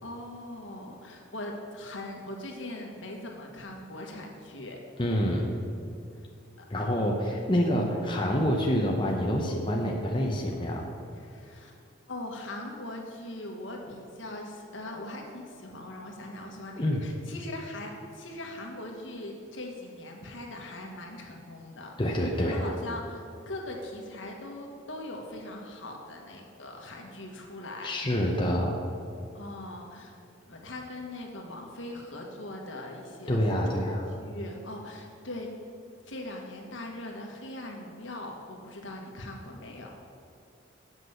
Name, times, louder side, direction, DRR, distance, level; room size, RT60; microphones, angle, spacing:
voice 1, 0.0-4.8 6.6-6.7 11.2-11.7 12.1-27.9 28.3-28.5 29.3-30.1 30.5-35.5 36.0-39.9, left 1 dB, 70° left, 1 dB, 1.5 m, -41 dB
voice 2, 5.0-5.5 6.7-10.9 16.8-17.0 22.0-22.6 27.8-28.8 33.3-34.1, equal, 25° left, -1 dB, 0.8 m, -27 dB
7.7 x 6.1 x 7.9 m, 2.5 s
head